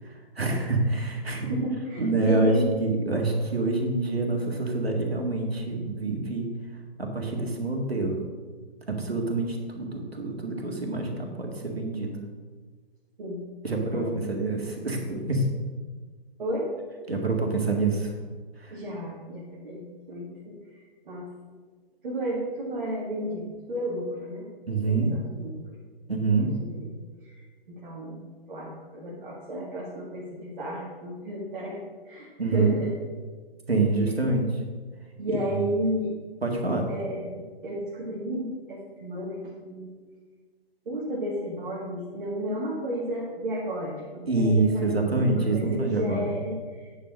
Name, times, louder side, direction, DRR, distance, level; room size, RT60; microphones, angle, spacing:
voice 1, 0.0-1.5 2.0-6.5 7.0-8.2 8.9-12.1 13.6-15.5 17.1-18.1 18.6-18.8 24.7-25.1 26.1-26.5 32.4-32.8 33.7-34.5 35.3-35.7 36.4-36.9 44.3-46.3, right 3 dB, 80° right, 2 dB, 2.1 m, -26 dB
voice 2, 1.4-2.7 13.2-13.5 13.9-14.3 16.4-16.7 18.7-20.6 21.0-21.3 22.0-24.5 24.8-25.8 26.4-26.9 27.2-28.2 28.5-31.8 32.1-32.9 35.2-36.1 36.9-39.9 40.9-46.9, equal, 55° right, -5 dB, 2.2 m, -32 dB
9.8 x 4.7 x 6.4 m, 1.4 s
figure-of-eight pair, 130°, 30 cm